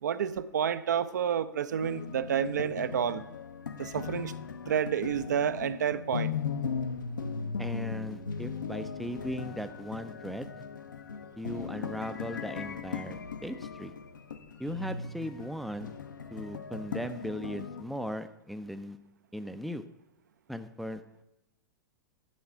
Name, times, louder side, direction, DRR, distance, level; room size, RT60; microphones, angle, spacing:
voice 1, 0.0-3.2 3.8-4.3 4.7-6.3, right 8 dB, 60° right, 13 dB, 0.4 m, -29 dB
sound 1, 1.8-17.8, left 5 dB, 70° left, 0.7 m, -38 dB
voice 2, 7.6-10.6 11.4-13.9 14.6-16.0 16.3-19.0 19.3-19.8 20.5-21.2, equal, ahead, 9 dB, 0.3 m, -38 dB
10.5 x 3.9 x 5.6 m, 0.93 s
figure-of-eight pair, 100°, 11 cm